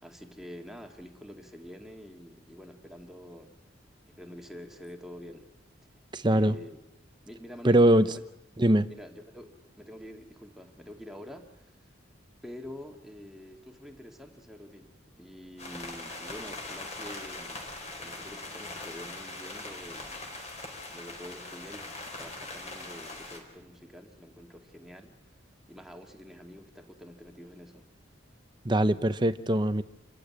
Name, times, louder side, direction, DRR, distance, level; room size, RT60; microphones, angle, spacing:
voice 1, 0.0-3.5 4.1-5.5 6.3-6.8 7.3-8.2 8.9-11.9 12.4-14.9 15.2-20.1 20.9-25.2 25.7-27.9, equal, ahead, 3 dB, 2.1 m, -47 dB
voice 2, 6.1-6.6 7.6-8.1 8.6-8.9 28.6-29.8, right 1 dB, 25° right, 12 dB, 0.8 m, -22 dB
sound 1, 15.6-23.4, left 2 dB, 35° left, 4.9 m, -41 dB
28.0 x 15.5 x 10.0 m, 0.91 s
head